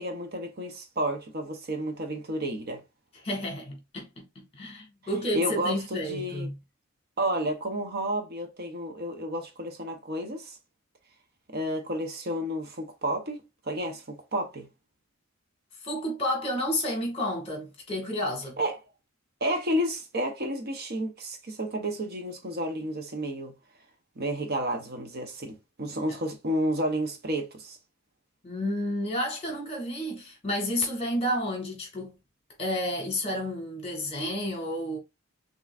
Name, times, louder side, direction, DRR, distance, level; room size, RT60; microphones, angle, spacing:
voice 1, 0.0-2.8 5.3-6.5 7.2-10.6 11.5-14.7 18.6-18.8 19.4-23.5 24.2-27.8, right 1 dB, 50° right, 0.9 m, -31 dB
voice 2, 3.2-6.5 15.8-18.6 26.1-26.2 28.4-32.1 32.6-35.0, left 1 dB, 30° left, 2.0 m, -31 dB
5.8 x 3.1 x 2.5 m
head